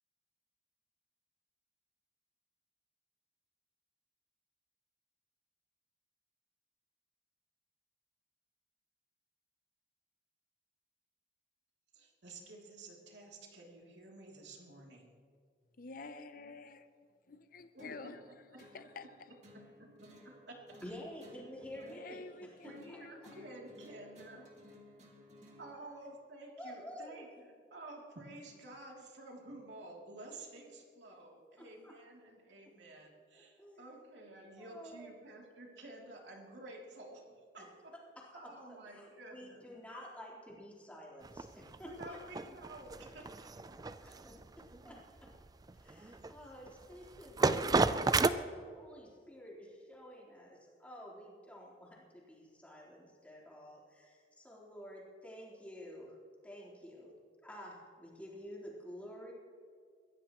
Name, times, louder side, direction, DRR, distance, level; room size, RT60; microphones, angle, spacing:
voice 1, 11.9-15.1 17.7-18.1 18.5-18.6 19.5-20.6 21.8-21.9 22.6-24.5 25.6-37.2 37.5-37.9 38.3-39.6 41.8-43.8, right 2 dB, 90° right, -1 dB, 3.0 m, -51 dB
voice 2, 15.8-16.9 17.3-18.3 18.6-19.3 21.8-23.6, left 3 dB, 55° left, 11 dB, 0.7 m, -50 dB
sound 1, 17.8-25.8, left 1 dB, 40° right, 2.4 m, -58 dB
voice 3, 20.8-23.0 26.6-27.2 31.6-31.9 33.6-33.8 34.5-35.2 38.2-42.2 44.0-44.4 44.8-45.3 45.8-56.2 56.4-57.1 57.4-59.3, equal, 10° left, -5 dB, 3.9 m, -50 dB
sound 2, 41.2-48.3, right 3 dB, 20° right, 0.4 m, -32 dB
22.5 x 16.0 x 3.1 m, 2.1 s
head